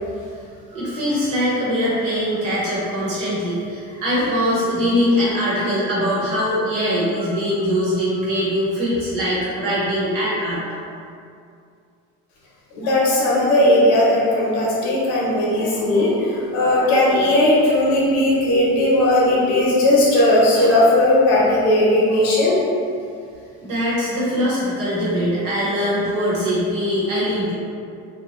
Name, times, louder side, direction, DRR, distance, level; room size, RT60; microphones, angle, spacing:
voice 1, 0.7-10.6 23.6-27.5, equal, 55° right, -9 dB, 1.3 m, -22 dB
voice 2, 12.7-22.5, left 1 dB, 65° left, -6 dB, 0.9 m, -17 dB
2.8 x 2.4 x 3.0 m, 2.4 s
cardioid pair, 170°, 29 cm